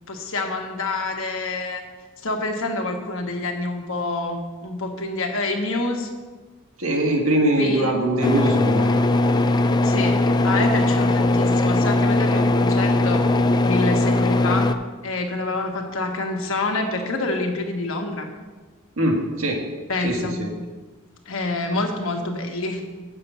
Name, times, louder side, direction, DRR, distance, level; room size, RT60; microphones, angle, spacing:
voice 1, 0.0-1.8 2.2-6.1 7.6-8.0 9.8-13.3 13.6-14.7 15.0-18.3 19.9-20.5 21.3-22.8, left 2 dB, 70° left, 3 dB, 1.3 m, -27 dB
voice 2, 6.8-9.0 19.0-19.7 20.0-20.5, right 1 dB, 85° right, 1 dB, 1.6 m, -22 dB
sound 1, 8.2-14.7, left 2 dB, 20° left, 0.3 m, -19 dB
8.2 x 6.7 x 5.6 m, 1.3 s
head